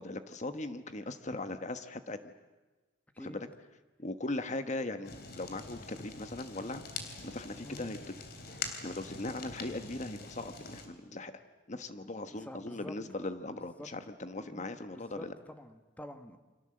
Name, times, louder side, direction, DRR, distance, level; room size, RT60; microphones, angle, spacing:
voice 1, 0.0-2.3 3.2-3.5 4.0-6.8 7.2-8.1 8.8-11.3 11.7-15.3, left 2 dB, 40° left, 9 dB, 1.2 m, -39 dB
Fire, 5.0-10.9, left 4 dB, 60° left, 3.3 m, -44 dB
voice 2, 12.3-13.0 13.5-13.9 14.3-16.4, left 1 dB, 10° left, 8 dB, 1.5 m, -48 dB
29.0 x 24.5 x 7.8 m, 1.2 s
head